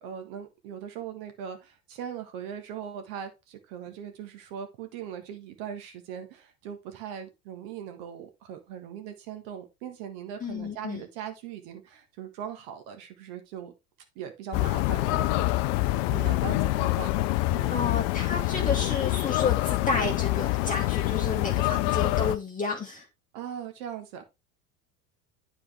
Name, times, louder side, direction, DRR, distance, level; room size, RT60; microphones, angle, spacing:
voice 1, 0.0-13.7 14.1-17.1 17.5-17.9 23.3-24.3, right 8 dB, 55° right, 7 dB, 1.6 m, -40 dB
voice 2, 10.4-11.0 17.7-23.1, left 4 dB, 15° left, 0 dB, 1.3 m, -31 dB
sound 1, 14.5-22.4, left 18 dB, 55° left, 0.6 m, -26 dB
9.9 x 4.3 x 3.5 m, 0.24 s
figure-of-eight pair, 70°, 47 cm